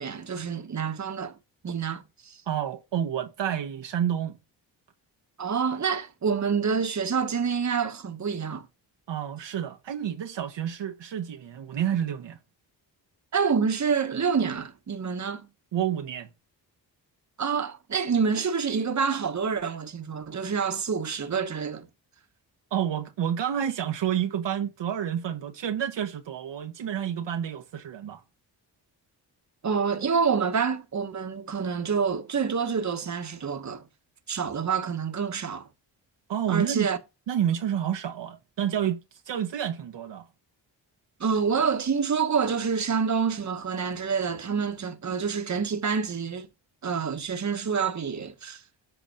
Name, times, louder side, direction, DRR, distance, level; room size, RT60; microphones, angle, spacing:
voice 1, 0.0-1.4 1.6-2.4 5.4-8.7 13.3-15.5 17.4-21.9 29.6-33.8 34.3-35.7 36.5-37.0 41.2-46.5 46.8-48.6, right 6 dB, 40° right, 1.3 m, -27 dB
voice 2, 2.5-4.4 9.1-12.4 15.7-16.3 22.7-28.2 36.3-36.9 37.3-39.0 39.3-40.3, right 9 dB, 70° right, 1.1 m, -29 dB
8.0 x 3.9 x 5.1 m
cardioid pair, 55°, 45 cm